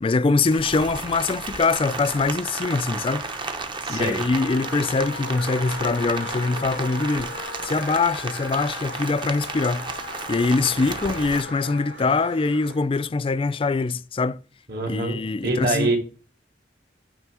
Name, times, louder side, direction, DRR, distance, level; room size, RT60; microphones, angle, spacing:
voice 1, 0.0-3.3 3.9-7.3 7.6-9.9 10.3-14.4 14.9-15.9, left 3 dB, 30° left, 0.4 m, -23 dB
Rain, 0.5-11.4, right 3 dB, 25° right, 0.8 m, -33 dB
Crow, 1.7-12.8, right 2 dB, 80° right, 2.7 m, -42 dB
voice 2, 3.8-4.2 14.7-15.2 15.4-16.0, right 2 dB, 60° right, 2.6 m, -24 dB
Wind instrument woodwind instrument, 4.3-12.0, left 5 dB, 75° left, 0.8 m, -39 dB
9.0 x 3.4 x 6.1 m
head